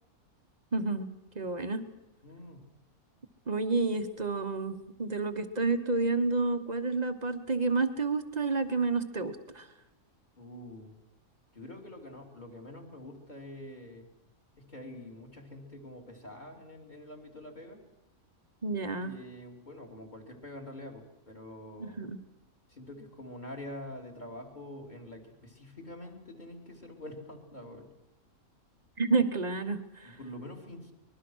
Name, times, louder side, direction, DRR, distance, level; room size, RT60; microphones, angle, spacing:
voice 1, 0.7-1.9 3.5-9.7 18.6-19.1 21.8-22.2 29.0-30.2, right 3 dB, 30° right, 8 dB, 1.2 m, -30 dB
voice 2, 2.2-2.6 10.4-10.9 11.5-14.1 14.6-17.8 19.0-22.1 22.7-27.9 30.0-30.9, left 1 dB, 30° left, 4 dB, 3.1 m, -46 dB
24.0 x 21.0 x 6.3 m, 0.91 s
omnidirectional pair, 1.5 m